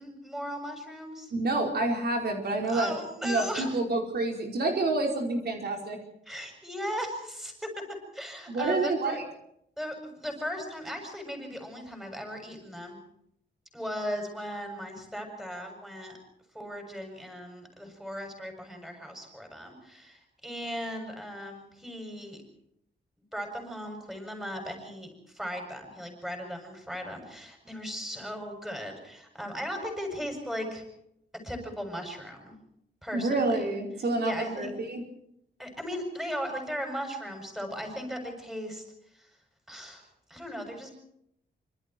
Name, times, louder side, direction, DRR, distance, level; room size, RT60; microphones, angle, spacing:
voice 1, 0.0-1.3 2.7-3.7 6.3-9.2 9.8-13.0 13.7-16.2 16.5-22.4 23.3-30.8 31.4-32.6 33.0-33.6 34.2-34.7 35.6-38.8 39.1-39.3 39.7-40.0 40.3-40.9, equal, ahead, 3 dB, 7.4 m, -37 dB
voice 2, 1.3-2.9 3.2-6.0 8.5-9.2 33.1-35.0, right 2 dB, 60° right, 2 dB, 4.9 m, -28 dB
27.0 x 26.5 x 4.6 m, 0.75 s
wide cardioid pair, 175°, 19 cm